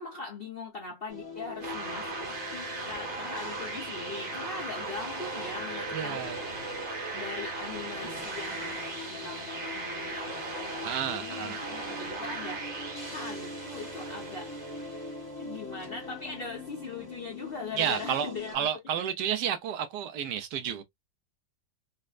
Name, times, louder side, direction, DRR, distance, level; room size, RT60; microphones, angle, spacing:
voice 1, 0.0-2.2 2.5-6.2 7.1-12.7 13.0-14.5 15.4-18.6, left 4 dB, 50° left, 0.7 m, -41 dB
sound 1, 1.1-18.5, left 2 dB, 20° left, 0.7 m, -42 dB
sound 2, 1.6-15.3, right 3 dB, 35° right, 1.0 m, -38 dB
voice 2, 5.9-6.4 8.5-8.7 10.8-11.6 17.8-20.8, right 9 dB, 75° right, 1.1 m, -31 dB
4.1 x 2.2 x 2.3 m
omnidirectional pair, 1.9 m